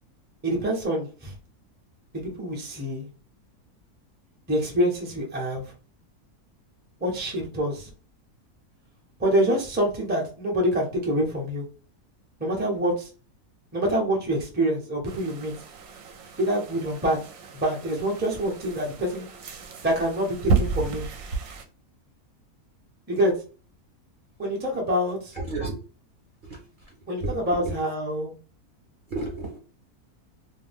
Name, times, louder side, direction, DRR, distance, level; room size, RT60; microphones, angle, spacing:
voice 1, 0.4-1.3 2.1-3.1 4.5-5.7 7.0-7.9 9.2-11.7 12.4-13.1 13.7-15.5 16.4-17.2 17.5-19.3 19.8-21.0 23.1-23.3 24.4-25.3 27.1-28.3, equal, 10° right, -1 dB, 0.5 m, -26 dB
sound 1, 15.0-21.6, right 4 dB, 70° right, 1.0 m, -32 dB
voice 2, 25.3-25.8 26.4-27.8 29.1-29.6, right 2 dB, 50° right, -3 dB, 0.7 m, -33 dB
2.5 x 2.2 x 3.4 m, 0.36 s
omnidirectional pair, 1.6 m